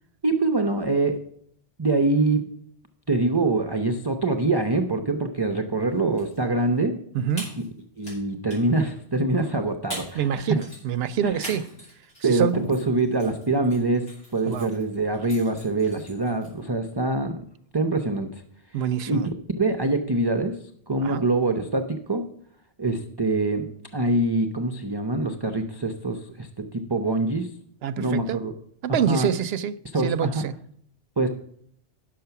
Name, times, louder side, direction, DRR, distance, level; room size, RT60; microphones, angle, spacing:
voice 1, 0.2-1.2 1.8-2.5 3.1-7.0 8.0-10.6 11.2-11.4 12.2-17.4 17.7-18.4 18.7-19.2 19.6-20.6 20.9-22.2 22.8-23.7 23.9-27.5 28.0-28.5 28.9-29.3 29.9-30.5 31.2-31.3, right 2 dB, 30° right, 0.5 m, -24 dB
sound 1, 5.9-6.4 6.7-6.8 7.3-8.2 8.5-8.8 9.5-9.6 9.9-10.3 10.5-16.6, right 1 dB, 85° left, 5.6 m, -40 dB
voice 2, 7.1-7.5 10.2-11.6 12.3-12.5 14.5-14.7 18.7-19.3 21.0-21.2 27.8-28.4 28.8-29.7 30.0-30.6, right 8 dB, 65° right, 0.8 m, -26 dB
10.0 x 6.7 x 5.8 m
omnidirectional pair, 1.2 m